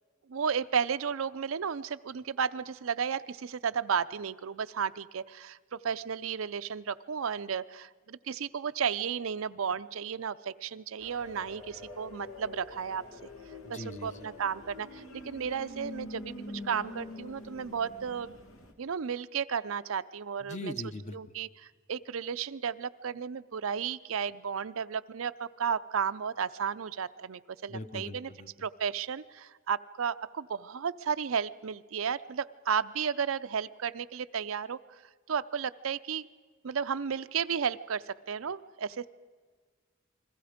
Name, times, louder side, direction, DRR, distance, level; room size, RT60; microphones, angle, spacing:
voice 1, 0.3-13.0 13.7-16.3 16.6-18.3 18.8-20.7 21.1-28.3 28.6-34.8 35.3-36.3 36.6-39.1, right 7 dB, 85° right, 13 dB, 0.5 m, -33 dB
sound 1, 11.0-18.7, left 1 dB, 85° left, 2.3 m, -45 dB
voice 2, 13.7-14.2 20.4-21.1 27.7-28.5, left 1 dB, 35° left, 10 dB, 0.9 m, -40 dB
29.0 x 21.0 x 5.1 m, 1.5 s
head